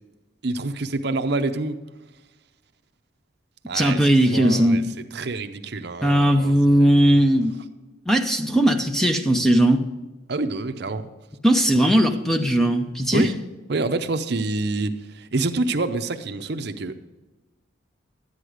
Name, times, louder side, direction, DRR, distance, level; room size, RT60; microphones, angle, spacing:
voice 1, 0.4-1.8 3.7-4.8 5.1-7.1 10.3-11.1 13.1-13.3 13.7-16.9, right 3 dB, 55° right, 9 dB, 0.7 m, -27 dB
voice 2, 3.7-4.9 6.0-7.5 8.1-9.8 11.4-13.3, equal, ahead, 5 dB, 0.6 m, -18 dB
12.5 x 9.6 x 4.9 m, 1.1 s
head